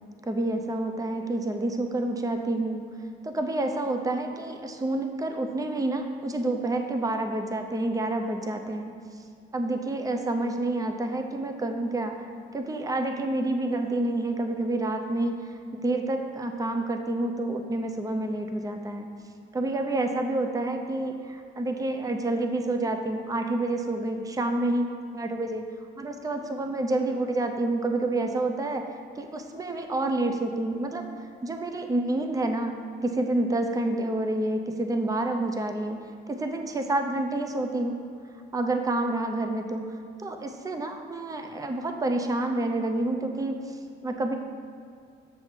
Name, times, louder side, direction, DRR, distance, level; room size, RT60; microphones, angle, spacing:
voice 1, 0.3-2.9 3.2-9.0 9.5-12.3 12.5-19.1 19.5-25.6 26.0-28.9 29.2-31.0 31.4-32.7 33.0-36.0 36.3-38.0 38.5-44.4, right 2 dB, 15° right, 5 dB, 0.7 m, -28 dB
7.2 x 7.0 x 4.4 m, 2.4 s
cardioid pair, 90°, 20 cm